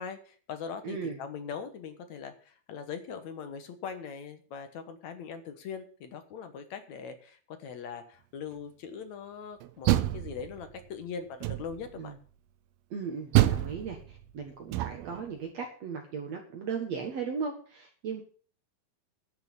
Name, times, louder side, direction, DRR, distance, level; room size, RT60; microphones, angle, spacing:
voice 1, 0.0-9.9 10.1-12.1, left 6 dB, 60° left, 8 dB, 2.2 m, -41 dB
voice 2, 0.8-1.2 11.9-12.1 12.9-18.2, right 6 dB, 55° right, 3 dB, 2.2 m, -37 dB
Door, 9.6-10.8 11.4-12.0 13.3-15.2, right 15 dB, 80° right, 2.5 m, -28 dB
11.0 x 6.7 x 8.2 m, 0.43 s
omnidirectional pair, 4.3 m